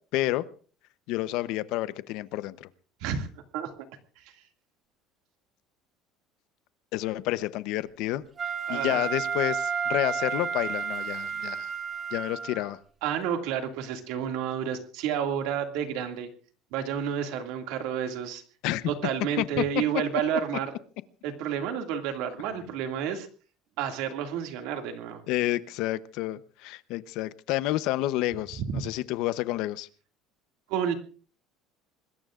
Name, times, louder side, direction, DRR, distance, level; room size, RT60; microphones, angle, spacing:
voice 1, 0.1-0.4 1.1-2.7 6.9-8.2 8.7-11.7 12.1-12.8 18.6-18.9 19.4-19.8 25.3-29.9, left 16 dB, 55° left, 0.7 m, -29 dB
Wind instrument woodwind instrument, 8.4-12.7, right 6 dB, 20° right, 1.6 m, -31 dB
voice 2, 8.7-9.0 13.0-16.3 16.7-18.4 18.9-20.7 21.2-23.3 23.8-25.2 28.6-28.8 30.7-30.9, right 8 dB, 65° right, 2.2 m, -30 dB
26.0 x 20.5 x 2.5 m
cardioid pair, 175°, 0 cm